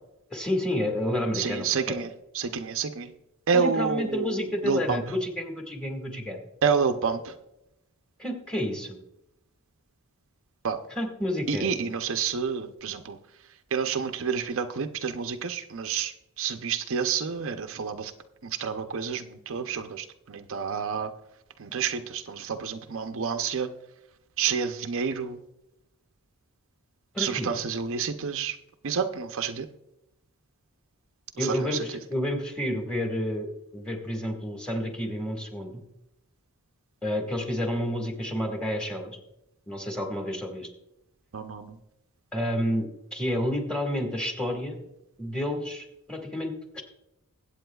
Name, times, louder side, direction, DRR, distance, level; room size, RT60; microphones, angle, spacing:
voice 1, 0.3-2.0 3.5-6.4 8.2-9.0 11.0-11.7 27.1-27.5 31.4-35.8 37.0-39.2 39.7-40.7 42.3-44.8 45.2-46.8, left 1 dB, 5° left, 2 dB, 1.7 m, -30 dB
voice 2, 1.3-2.1 2.3-3.1 3.5-5.0 6.6-7.4 10.6-10.8 11.5-13.2 13.7-18.1 18.4-21.1 21.6-23.7 24.4-25.4 27.2-28.6 28.8-29.7 31.4-31.9 41.3-41.8, right 6 dB, 60° right, 7 dB, 0.6 m, -29 dB
21.5 x 8.5 x 2.3 m, 0.87 s
head